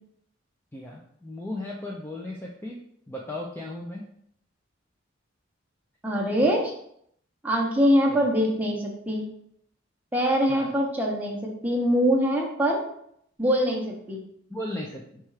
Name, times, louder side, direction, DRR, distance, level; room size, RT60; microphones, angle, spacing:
voice 1, 0.7-2.8 3.1-4.0 6.4-6.6 8.1-8.2 10.4-10.7 14.5-15.2, left 1 dB, 10° left, -2 dB, 0.4 m, -36 dB
voice 2, 6.0-6.7 7.4-9.2 10.1-12.8 13.4-14.2, equal, 10° right, -2 dB, 0.7 m, -23 dB
4.2 x 2.3 x 4.7 m, 0.71 s
head